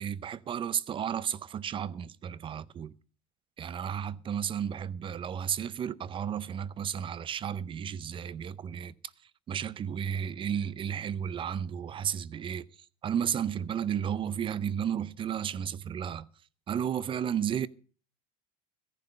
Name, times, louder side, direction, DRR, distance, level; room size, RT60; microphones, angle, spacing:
voice 1, 0.0-3.0 3.6-8.9 9.5-12.7 13.0-16.3 16.7-17.7, right 8 dB, 30° right, 0.6 m, -33 dB
14.5 x 10.5 x 5.3 m
supercardioid pair, 125°, 18 cm